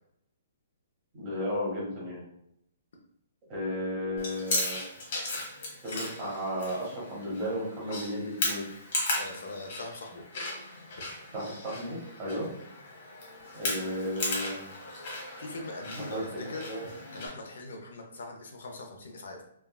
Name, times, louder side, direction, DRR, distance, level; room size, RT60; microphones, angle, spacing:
voice 1, 1.1-2.2 3.5-4.8 5.8-8.6 11.3-12.5 13.5-14.6 15.9-16.8, equal, 20° right, -6 dB, 1.0 m, -34 dB
Chewing mastication, 4.2-17.3, left 2 dB, 35° left, 0.9 m, -36 dB
voice 2, 9.2-10.2 15.4-16.7 17.1-19.4, left 2 dB, 70° left, 2 dB, 0.6 m, -41 dB
3.4 x 2.3 x 2.2 m, 0.75 s
hypercardioid pair, 175°, 0 cm